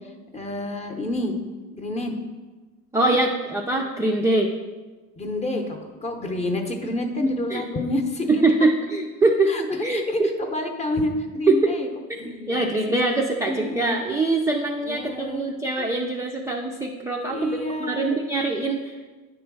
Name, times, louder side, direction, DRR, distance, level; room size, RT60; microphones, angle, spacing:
voice 1, 0.3-1.3 1.7-2.2 3.1-3.2 5.2-8.4 9.5-11.9 12.2-12.8 13.5-13.9 14.7-15.5 15.8-15.9 17.3-18.2, left 1 dB, 20° left, 4 dB, 0.8 m, -28 dB
voice 2, 2.9-4.5 7.5-7.6 8.3-10.3 11.5-11.7 12.5-18.9, right 2 dB, 10° right, 0 dB, 0.4 m, -23 dB
9.3 x 3.1 x 6.0 m, 1.3 s
cardioid pair, 140°, 32 cm